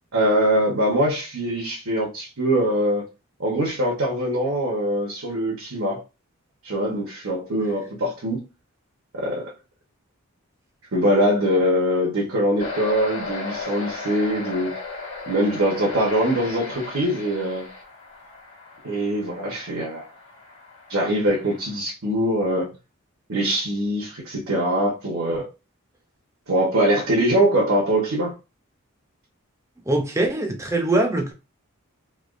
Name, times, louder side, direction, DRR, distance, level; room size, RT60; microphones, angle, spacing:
voice 1, 0.1-3.0 3.4-6.0 6.6-8.4 9.1-9.5 10.9-14.8 15.3-17.7 18.8-20.1 20.9-22.7 23.3-25.5 26.5-28.3, equal, 70° right, 1.0 m, -23 dB
sound 1, 12.6-21.8, left 3 dB, 55° left, 1.3 m, -36 dB
voice 2, 29.9-31.3, right 2 dB, 15° right, 0.5 m, -22 dB
3.4 x 2.8 x 2.5 m
head